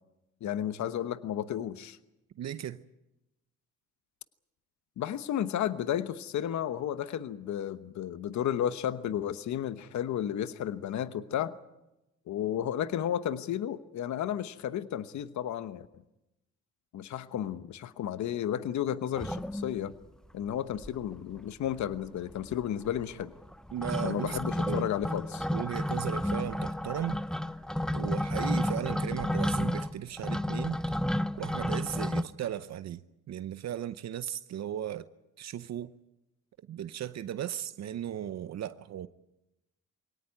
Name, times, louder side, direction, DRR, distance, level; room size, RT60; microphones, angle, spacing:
voice 1, 0.4-2.0 5.0-11.5 12.3-15.9 16.9-19.9 20.3-23.3 24.0-25.5, left 10 dB, 70° left, 1.1 m, -33 dB
voice 2, 2.4-2.8 23.7-24.4 24.6-24.9 25.5-27.2 27.9-30.8 31.4-33.0 33.3-35.1 35.4-35.9 36.7-39.1, right 11 dB, 60° right, 0.8 m, -36 dB
sound 1, 19.1-20.1 20.5-20.6 20.7-21.4 21.7-32.2, left 1 dB, ahead, 0.8 m, -32 dB
22.5 x 18.0 x 9.5 m
cardioid pair, 90°, 30 cm